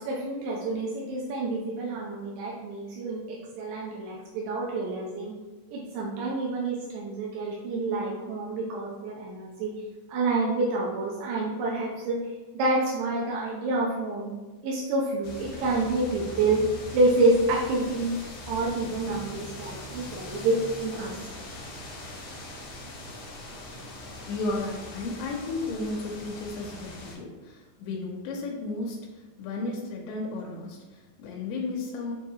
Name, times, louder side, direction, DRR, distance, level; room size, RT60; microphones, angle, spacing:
voice 1, 0.1-5.3 5.7-9.7 10.1-12.2 12.5-14.3 14.6-16.6 16.9-18.2 18.5-20.6 20.8-21.1, right 2 dB, 90° right, -4 dB, 2.3 m, -28 dB
sound 1, 15.2-27.2, left 1 dB, 70° left, 1.5 m, -41 dB
voice 2, 24.3-32.1, left 2 dB, 90° left, -1 dB, 2.3 m, -34 dB
6.6 x 2.7 x 2.8 m, 1.2 s
omnidirectional pair, 3.9 m